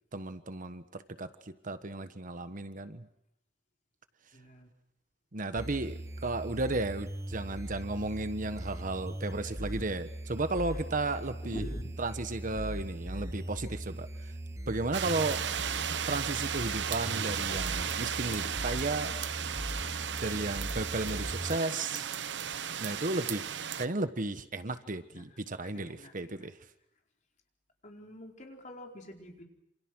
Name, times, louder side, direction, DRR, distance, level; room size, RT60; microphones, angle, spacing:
voice 1, 0.1-3.1 5.3-11.7 12.0-14.3 14.7-15.4 16.1-19.1 20.2-22.1 22.8-23.5 23.8-26.6, right 2 dB, 45° right, 11 dB, 1.3 m, -34 dB
voice 2, 4.3-4.7 9.3-9.5 10.7-10.8 11.4-11.9 25.1-25.3 25.7-26.4 27.8-29.4, left 1 dB, 45° left, 2 dB, 4.6 m, -46 dB
sound 1, 5.6-21.6, right 1 dB, 15° right, 1.0 m, -40 dB
sound 2, 14.9-23.9, right 8 dB, 70° right, 0.9 m, -35 dB
27.5 x 27.5 x 6.3 m, 0.79 s
head